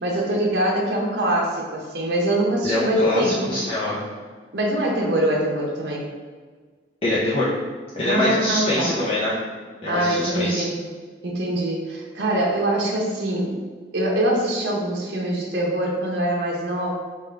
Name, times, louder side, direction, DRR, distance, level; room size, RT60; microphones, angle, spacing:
voice 1, 0.0-3.4 4.5-6.1 8.0-9.0 9.9-10.8 11.2-13.5 13.9-16.9, right 1 dB, 75° right, -2 dB, 0.8 m, -23 dB
voice 2, 2.6-4.0 7.0-7.6 8.0-9.4 9.8-10.7, left 1 dB, 30° left, -9 dB, 0.6 m, -24 dB
3.6 x 2.4 x 4.4 m, 1.5 s
head